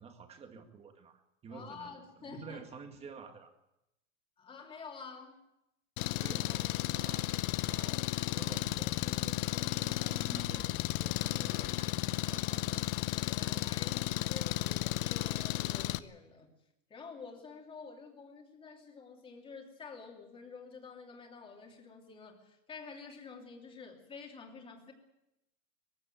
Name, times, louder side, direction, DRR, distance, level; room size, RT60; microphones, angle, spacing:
voice 1, 0.0-3.5 6.2-12.9 13.3-13.9, right 5 dB, 15° right, 6 dB, 1.9 m, -50 dB
voice 2, 1.5-2.6 4.4-5.4 13.1-16.5 16.9-24.9, left 5 dB, 15° left, 2 dB, 2.9 m, -49 dB
Engine, 6.0-16.0, left 16 dB, 45° left, 0.8 m, -34 dB
21.5 x 15.5 x 9.2 m, 0.88 s
supercardioid pair, 170°, 38 cm